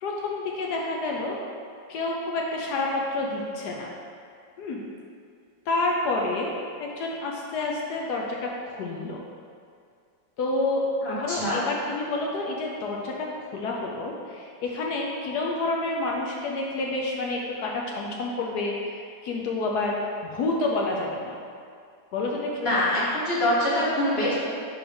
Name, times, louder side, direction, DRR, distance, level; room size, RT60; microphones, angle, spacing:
voice 1, 0.0-1.4 1.9-3.9 4.6-4.8 5.7-6.5 6.8-9.2 10.4-19.9 20.2-21.4 22.1-22.5, left 2 dB, 70° left, -1 dB, 1.1 m, -29 dB
voice 2, 11.0-11.6 22.6-24.3, left 1 dB, 35° left, -8 dB, 1.3 m, -24 dB
4.8 x 3.9 x 5.1 m, 2.3 s
omnidirectional pair, 2.0 m